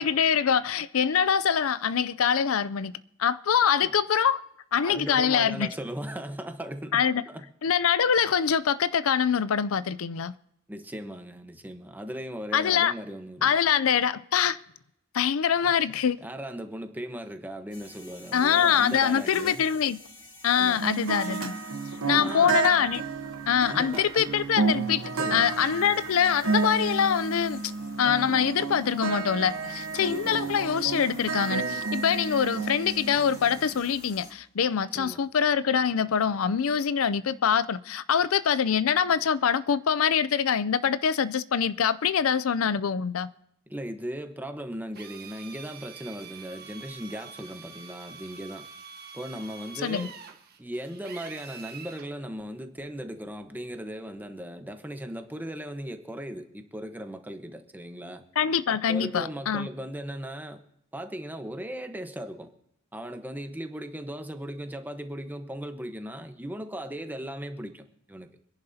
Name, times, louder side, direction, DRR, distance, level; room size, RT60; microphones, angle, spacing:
voice 1, 0.0-2.9 3.2-4.4 4.7-5.7 6.9-7.2 7.6-10.3 12.5-12.9 13.4-14.6 15.1-16.2 18.3-20.0 20.4-21.5 22.1-23.0 23.5-27.6 28.0-43.3 49.8-50.1 58.4-59.7, left 7 dB, 85° left, 0.5 m, -24 dB
voice 2, 4.8-7.5 10.7-13.5 15.6-15.7 16.2-19.6 20.5-20.8 22.1-22.7 23.7-24.4 25.2-25.5 30.0-30.5 34.9-35.2 43.7-48.7 49.1-50.1 50.6-58.2 58.7-60.6 60.9-62.5 62.9-68.3, equal, 10° right, 1.0 m, -38 dB
sound 1, 17.7-34.3, left 2 dB, 40° left, 3.1 m, -50 dB
sound 2, 20.8-33.8, right 4 dB, 85° right, 1.2 m, -31 dB
Drill, 44.9-52.1, right 6 dB, 50° right, 1.4 m, -45 dB
25.5 x 11.0 x 2.8 m
head